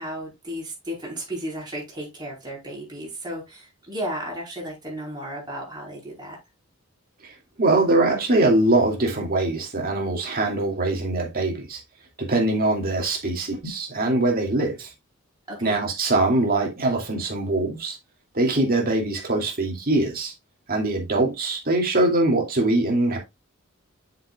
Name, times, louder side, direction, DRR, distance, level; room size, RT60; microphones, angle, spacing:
voice 1, 0.0-6.4 15.5-15.8, equal, 20° right, 4.9 m, -34 dB
voice 2, 7.2-11.8 12.2-14.9 15.6-18.0 18.3-20.3 20.7-23.2, right 2 dB, 45° right, 2.6 m, -22 dB
7.8 x 6.8 x 2.4 m
head